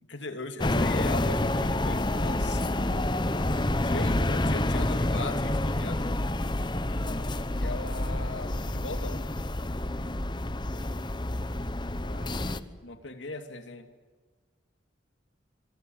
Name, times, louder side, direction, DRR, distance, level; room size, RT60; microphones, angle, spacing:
voice 1, 0.0-2.6 3.8-6.0 7.5-9.3 12.8-13.9, left 2 dB, 75° left, 6 dB, 2.8 m, -38 dB
sound 1, 0.6-12.6, left 1 dB, 25° left, 0.9 m, -28 dB
voice 2, 6.9-7.3 12.0-12.8, equal, 50° left, 4 dB, 7.5 m, -44 dB
25.5 x 23.5 x 8.0 m, 1.4 s
head